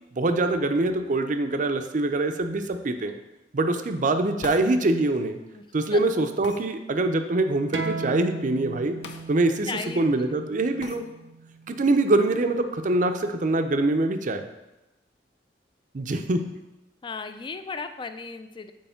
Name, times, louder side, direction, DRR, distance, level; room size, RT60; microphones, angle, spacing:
voice 1, 0.1-3.2 3.5-5.4 5.7-9.0 9.3-9.7 10.0-11.0 11.7-14.4 15.9-16.5, right 2 dB, 45° right, 7 dB, 0.5 m, -24 dB
sound 1, 4.4-4.7 6.4-6.6 9.0-9.3 9.6-9.7 10.8-11.0, left 4 dB, 85° left, 0.7 m, -39 dB
sound 2, 7.7-12.9, right 3 dB, 90° right, 0.6 m, -37 dB
voice 2, 9.7-10.4 17.0-18.7, left 4 dB, 30° left, 9 dB, 0.4 m, -36 dB
8.6 x 3.2 x 5.6 m, 1.0 s
head